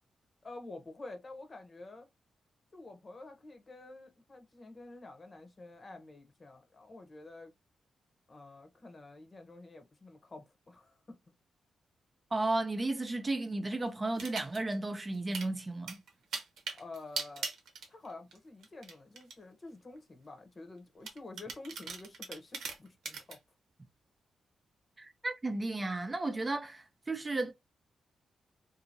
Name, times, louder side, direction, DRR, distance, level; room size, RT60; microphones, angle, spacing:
voice 1, 0.4-2.1 2.7-7.5 8.3-11.0 16.7-17.5 17.9-23.4, left 2 dB, 40° left, 0.9 m, -49 dB
voice 2, 12.3-16.0 25.0-27.5, right 2 dB, 30° right, 0.6 m, -34 dB
sound 1, 14.1-14.8 15.1-15.5 15.9-18.4 18.6-19.3 20.0-20.1 21.0-23.4, right 5 dB, 85° right, 0.9 m, -40 dB
2.7 x 2.6 x 2.7 m
cardioid pair, 65°, 0 cm